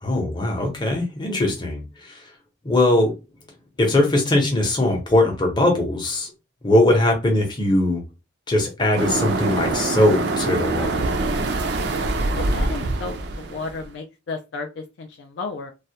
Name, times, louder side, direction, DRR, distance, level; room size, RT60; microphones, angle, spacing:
voice 1, 0.0-2.2 2.6-3.2 3.8-6.3 6.6-8.0 8.5-11.1, left 1 dB, 20° left, 0.7 m, -20 dB
sound 1, 9.0-13.9, right 2 dB, 55° right, 0.4 m, -24 dB
voice 2, 12.3-13.2 13.5-15.7, left 3 dB, 60° left, 0.3 m, -33 dB
2.3 x 2.1 x 2.7 m
head